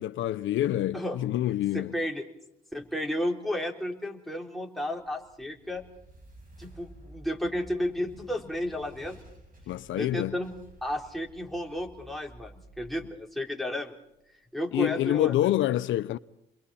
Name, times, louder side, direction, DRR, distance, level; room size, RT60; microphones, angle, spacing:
voice 1, 0.0-1.9 9.7-10.3 14.7-16.2, left 13 dB, 80° left, 0.7 m, -27 dB
voice 2, 1.7-2.3 2.7-5.8 6.6-9.2 9.9-10.5 10.8-14.0 14.5-15.3, left 1 dB, ahead, 3.8 m, -32 dB
sound 1, 4.9-14.1, right 2 dB, 45° right, 7.5 m, -53 dB
29.5 x 22.5 x 4.3 m
cardioid pair, 90°, 20 cm